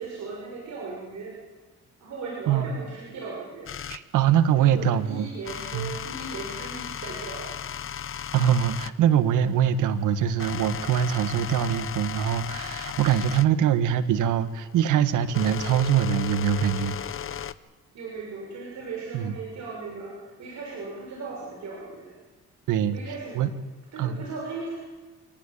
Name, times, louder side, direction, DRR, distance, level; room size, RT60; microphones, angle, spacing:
voice 1, 0.0-1.4 2.0-3.8 4.6-7.8 17.9-22.1 22.9-23.5 23.9-24.7, right 4 dB, 65° right, -2 dB, 6.9 m, -37 dB
sound 1, 3.7-4.0 5.4-9.0 9.6-17.5, left 9 dB, 45° left, 0.9 m, -36 dB
voice 2, 3.9-5.3 5.7-5.9 8.3-17.0 19.1-19.3 22.7-23.0 23.3-23.5 24.0-24.2, right 9 dB, 90° right, 11 dB, 1.6 m, -23 dB
25.0 x 19.0 x 8.5 m, 1.2 s
cardioid pair, 90°, 30 cm